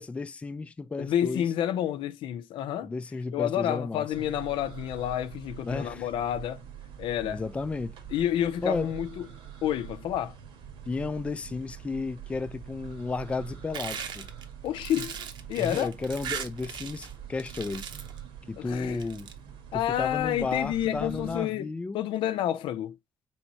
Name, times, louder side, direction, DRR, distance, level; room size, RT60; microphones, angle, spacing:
voice 1, 0.0-1.5 2.8-4.1 5.6-6.1 7.2-7.9 8.6-8.9 10.9-14.3 15.6-17.9 18.5-19.3 19.7-22.1, left 3 dB, 15° left, 0.3 m, -33 dB
voice 2, 1.0-2.9 3.3-6.6 7.0-7.4 8.1-9.1 9.6-10.4 14.6-15.1 15.5-15.9 18.6-19.0 19.7-23.0, left 11 dB, 85° left, 0.6 m, -29 dB
sound 1, 4.1-21.4, right 9 dB, 85° right, 1.3 m, -45 dB
sound 2, 13.7-17.1 17.4-18.2 18.9-19.3, right 7 dB, 65° right, 0.8 m, -38 dB
4.1 x 3.5 x 2.8 m
cardioid pair, 145°, 9 cm